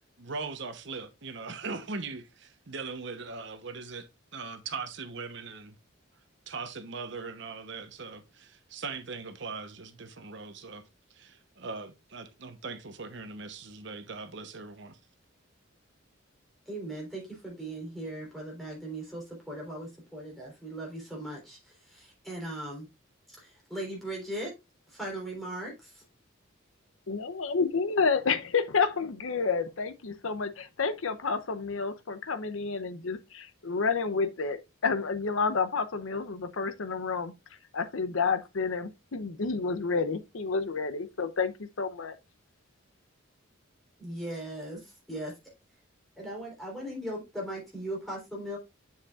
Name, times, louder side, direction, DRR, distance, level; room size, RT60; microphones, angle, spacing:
voice 1, 0.2-5.7 6.5-10.8 11.1-15.0, right 4 dB, 60° right, 0.9 m, -40 dB
voice 2, 16.7-22.9 23.4-24.5 24.9-26.0 44.0-45.3 46.2-48.6, right 1 dB, ahead, 3.7 m, -38 dB
voice 3, 27.1-37.3 37.7-42.2, left 5 dB, 75° left, 0.7 m, -30 dB
7.4 x 7.2 x 2.4 m
head